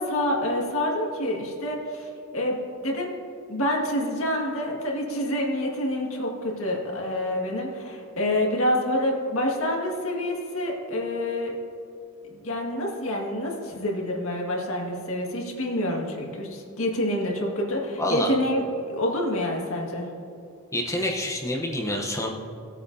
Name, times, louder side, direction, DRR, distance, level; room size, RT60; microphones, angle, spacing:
voice 1, 0.0-2.6 2.8-3.1 3.5-11.5 12.3-20.1, left 1 dB, 70° left, -1 dB, 1.9 m, -27 dB
voice 2, 18.0-18.3 20.7-22.3, left 1 dB, 15° left, 0 dB, 0.8 m, -27 dB
17.5 x 8.5 x 2.7 m, 2.7 s
head